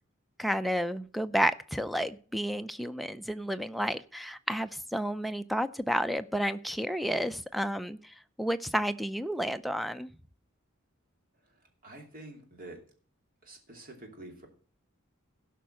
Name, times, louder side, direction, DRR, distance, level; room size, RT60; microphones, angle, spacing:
voice 1, 0.4-10.1, equal, ahead, 13 dB, 0.4 m, -31 dB
voice 2, 11.4-12.8 13.4-14.5, right 2 dB, 45° right, 3 dB, 2.8 m, -48 dB
16.0 x 5.6 x 6.4 m, 0.43 s
head